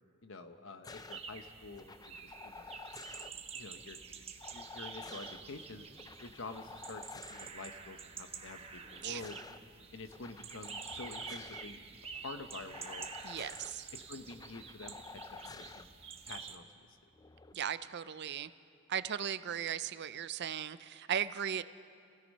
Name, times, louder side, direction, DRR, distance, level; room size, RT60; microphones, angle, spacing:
voice 1, 0.2-2.7 3.1-5.8 6.2-9.4 9.9-11.8 12.1-13.1 13.9-15.2 15.5-15.9 16.3-16.9, left 3 dB, 60° left, 8 dB, 1.1 m, -48 dB
sound 1, 0.8-1.2 1.8-3.3 4.4-5.4 5.9-7.5 8.8-9.6 10.1-11.6 12.7-13.7 14.3-15.8 17.1-17.5, left 4 dB, 20° left, 0.5 m, -50 dB
sound 2, 0.9-16.6, right 6 dB, 30° right, 1.1 m, -48 dB
voice 2, 13.2-13.9 17.5-18.5 18.9-21.6, right 8 dB, 50° right, 14 dB, 0.5 m, -37 dB
28.5 x 17.0 x 5.5 m, 2.4 s
head